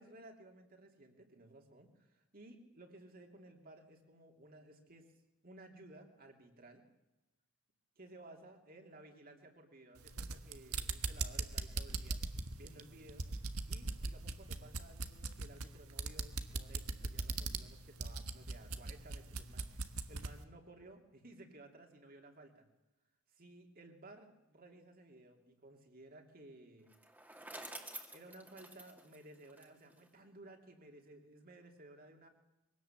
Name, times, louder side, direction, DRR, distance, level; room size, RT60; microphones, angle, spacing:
voice 1, 0.0-5.1 5.4-6.8 8.0-12.2 12.5-13.2 13.7-19.7 20.1-22.7 23.3-26.9 28.1-32.3, right 2 dB, 45° right, 3 dB, 3.0 m, -57 dB
sound 1, 10.0-20.4, right 3 dB, 90° right, 1.4 m, -40 dB
Bicycle, 26.9-30.1, right 1 dB, 10° right, 2.2 m, -50 dB
23.0 x 17.5 x 7.4 m, 1.0 s
head